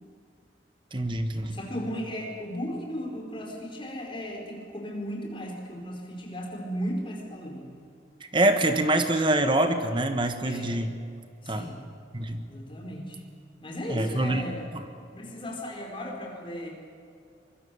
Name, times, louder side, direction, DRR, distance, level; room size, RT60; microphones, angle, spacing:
voice 1, 0.9-1.6 8.3-10.9 11.5-11.7 12.1-12.4 13.9-14.4, right 1 dB, 25° right, 7 dB, 1.4 m, -25 dB
voice 2, 1.5-7.7 10.4-10.7 11.4-11.8 12.5-13.2 13.6-14.7 15.1-16.7, equal, 30° left, 0 dB, 4.9 m, -36 dB
24.5 x 21.5 x 7.1 m, 2.5 s
head